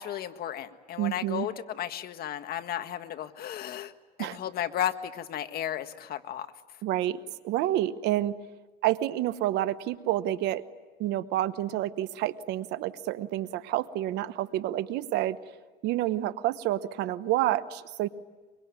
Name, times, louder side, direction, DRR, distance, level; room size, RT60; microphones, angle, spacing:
voice 1, 0.0-3.9 4.2-6.5, left 10 dB, 65° left, 9 dB, 1.6 m, -34 dB
voice 2, 1.0-1.5 4.2-4.4 6.8-7.2 7.4-8.3 8.8-10.6 11.0-15.4 15.8-18.1, right 14 dB, 90° right, 13 dB, 1.1 m, -29 dB
24.0 x 23.5 x 9.7 m, 1.3 s
cardioid pair, 110°, 17 cm